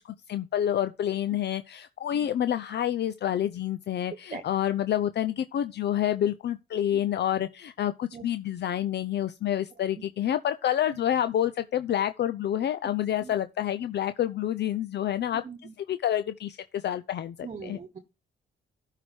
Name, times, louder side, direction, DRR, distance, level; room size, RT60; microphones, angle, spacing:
voice 1, 0.3-15.4 15.9-17.8, left 11 dB, 60° left, 0.7 m, -28 dB
voice 2, 17.4-18.0, right 5 dB, 35° right, 1.2 m, -41 dB
12.5 x 5.0 x 4.5 m
cardioid pair, 90°, 20 cm